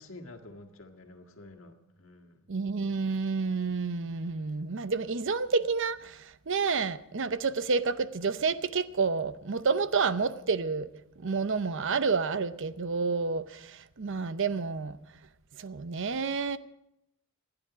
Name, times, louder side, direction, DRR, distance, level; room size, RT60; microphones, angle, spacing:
voice 1, 0.0-2.4, left 2 dB, 70° left, 1.8 m, -49 dB
voice 2, 2.5-15.2 15.5-16.6, right 4 dB, 65° right, 0.7 m, -29 dB
27.5 x 9.9 x 5.0 m
head